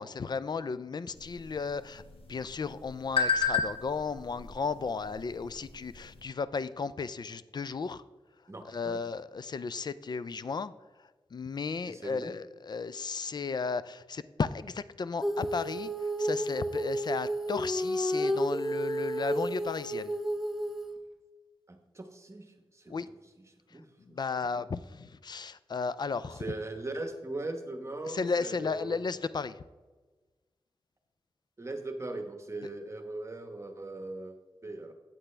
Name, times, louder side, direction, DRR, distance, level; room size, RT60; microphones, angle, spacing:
voice 1, 0.0-2.0 2.3-8.0 8.7-10.7 11.3-15.9 16.2-20.1 22.9-23.1 24.1-26.4 28.1-29.6, left 5 dB, 50° left, 16 dB, 0.4 m, -34 dB
sound 1, 1.1-6.2, left 5 dB, 75° left, 1.3 m, -34 dB
voice 2, 8.5-9.0 11.9-12.3 21.7-23.0 23.4-24.7 26.3-29.0 31.6-34.9, right 2 dB, 30° right, 6 dB, 1.0 m, -40 dB
Female singing, 15.2-20.9, equal, 5° right, 0.7 m, -31 dB
8.7 x 8.1 x 3.3 m, 1.3 s
wide cardioid pair, 80°, 10 cm